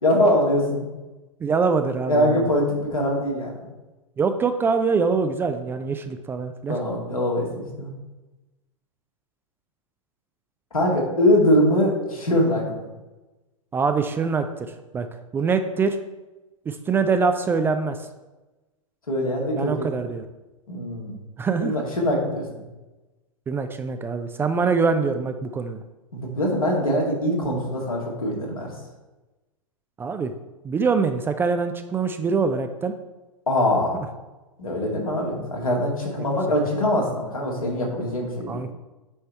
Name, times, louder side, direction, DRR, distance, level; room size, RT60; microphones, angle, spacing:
voice 1, 0.0-0.9 2.1-3.7 6.7-7.9 10.7-12.9 19.1-19.9 20.7-21.2 21.6-22.4 26.1-28.7 33.5-34.0 34.6-38.6, left 1 dB, 80° left, -2 dB, 2.1 m, -23 dB
voice 2, 1.4-2.5 4.2-6.8 13.7-15.1 15.3-16.0 16.7-18.1 19.5-20.2 21.4-21.8 23.5-25.8 30.0-30.3 30.6-32.9 33.9-34.1 38.5-38.7, right 5 dB, 15° right, 8 dB, 0.3 m, -24 dB
8.6 x 3.3 x 4.3 m, 1.1 s
figure-of-eight pair, 100°, 18 cm